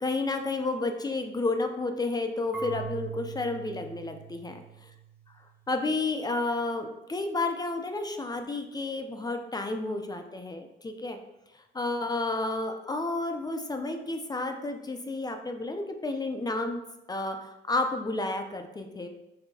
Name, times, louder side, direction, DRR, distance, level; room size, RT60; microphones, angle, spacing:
voice 1, 0.0-4.6 5.7-11.2 11.7-16.8 17.1-19.1, left 2 dB, 20° left, 5 dB, 0.4 m, -31 dB
Marimba xylophone / Wood, 2.5-5.4, right 7 dB, 10° right, 0.8 m, -41 dB
4.6 x 3.3 x 2.7 m, 0.93 s
cardioid pair, 90°, 20 cm